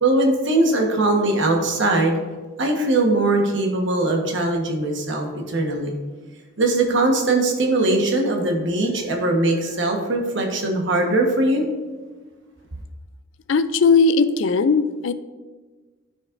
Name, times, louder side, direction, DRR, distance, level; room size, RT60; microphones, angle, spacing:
voice 1, 0.0-2.2 2.6-6.0 6.6-11.7, right 2 dB, 65° right, 2 dB, 1.2 m, -20 dB
voice 2, 13.5-15.1, left 4 dB, 65° left, 13 dB, 0.4 m, -18 dB
12.5 x 5.3 x 2.5 m, 1.3 s
head